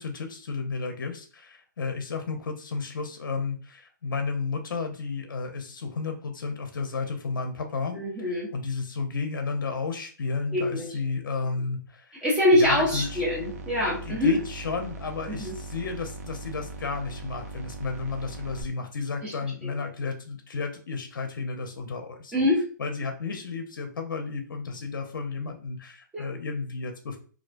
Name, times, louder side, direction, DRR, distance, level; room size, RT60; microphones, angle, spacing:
voice 1, 0.0-8.0 8.5-12.1 12.5-13.2 14.0-22.5 22.8-27.2, left 4 dB, 80° left, 5 dB, 0.5 m, -32 dB
voice 2, 7.9-8.5 10.5-10.9 12.2-14.4 15.3-15.5 19.2-19.3 19.6-19.7 22.3-22.7 26.1-26.3, left 1 dB, 10° right, -5 dB, 0.7 m, -24 dB
sound 1, 12.6-18.6, right 2 dB, 45° right, 0.4 m, -40 dB
2.3 x 2.1 x 2.4 m, 0.40 s
hypercardioid pair, 145°, 11 cm